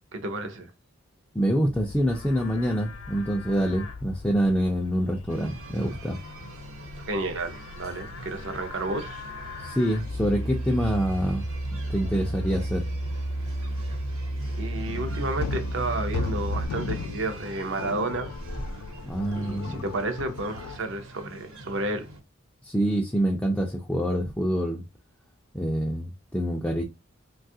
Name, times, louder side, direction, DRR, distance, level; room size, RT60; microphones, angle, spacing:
voice 1, 0.1-0.7 7.1-9.3 14.6-18.3 19.3-22.1, right 2 dB, 55° right, 0.5 m, -31 dB
voice 2, 1.3-6.2 9.6-11.5 11.7-12.9 19.0-19.9 22.6-24.8 25.5-26.8, equal, 5° left, 0.3 m, -26 dB
Livestock farm animals working animals, 1.7-16.7, right 1 dB, 60° left, 0.7 m, -34 dB
sound 1, 5.3-22.2, right 1 dB, 80° right, 1.0 m, -43 dB
sound 2, 14.9-20.8, left 5 dB, 85° left, 0.4 m, -36 dB
3.3 x 2.3 x 2.6 m
head